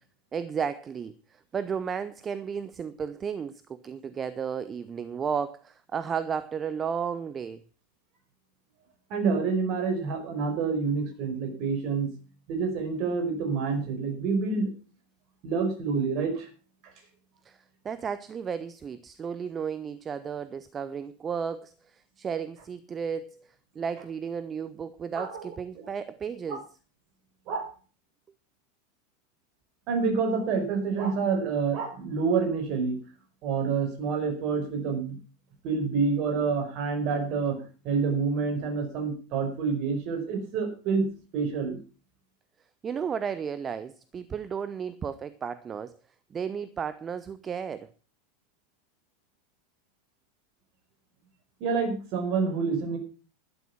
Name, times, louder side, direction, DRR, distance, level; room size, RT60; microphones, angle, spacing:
voice 1, 0.3-7.6 17.4-26.6 42.8-46.0 46.3-47.9, right 7 dB, 25° right, 0.8 m, -33 dB
voice 2, 9.1-12.1 12.5-14.7 15.4-16.5 25.2-25.5 26.5-26.6 27.5-27.7 29.9-33.0 33.4-35.1 35.6-41.0 41.3-41.8 51.6-53.0, right 5 dB, 45° right, 5.1 m, -28 dB
12.5 x 11.0 x 5.9 m
figure-of-eight pair, 85°, 0 cm